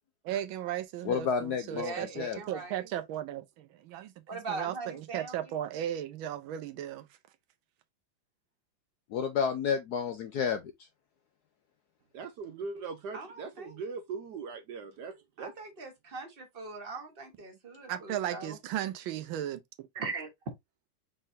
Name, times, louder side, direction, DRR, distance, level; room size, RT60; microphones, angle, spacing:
voice 1, 0.2-4.1 4.5-7.0 17.9-19.9, right 11 dB, 85° right, 1.5 m, -36 dB
voice 2, 1.0-2.4 9.1-10.7, left 6 dB, 70° left, 0.9 m, -30 dB
voice 3, 1.7-2.9 4.3-5.5 13.1-13.8 15.4-18.6 19.9-20.3, right 3 dB, 35° right, 1.2 m, -40 dB
voice 4, 12.1-15.5, right 5 dB, 70° right, 1.1 m, -40 dB
5.3 x 3.7 x 2.6 m
omnidirectional pair, 2.2 m